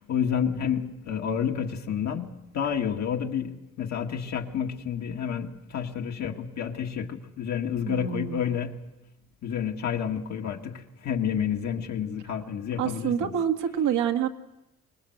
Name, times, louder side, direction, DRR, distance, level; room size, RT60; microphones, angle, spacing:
voice 1, 0.0-8.8 9.4-13.3, left 8 dB, 65° left, 2 dB, 2.0 m, -30 dB
voice 2, 7.9-8.4 12.8-14.3, right 9 dB, 85° right, 6 dB, 1.8 m, -27 dB
25.0 x 20.0 x 8.0 m, 0.99 s
cardioid pair, 90°, 30 cm